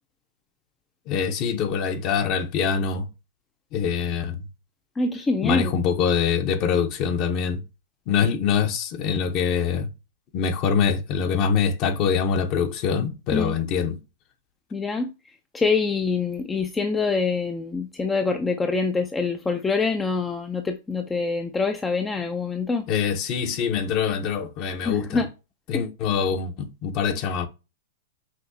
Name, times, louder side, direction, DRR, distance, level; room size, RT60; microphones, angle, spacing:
voice 1, 1.1-3.1 3.7-4.4 5.4-7.6 8.1-9.9 10.3-14.0 22.9-25.2 25.7-27.5, left 7 dB, 40° left, 0.8 m, -24 dB
voice 2, 5.0-5.7 13.3-13.5 14.7-15.1 15.5-22.9 24.8-25.3 25.7-25.8, left 4 dB, 10° left, 0.4 m, -25 dB
5.8 x 2.7 x 2.7 m
hypercardioid pair, 145°, 0 cm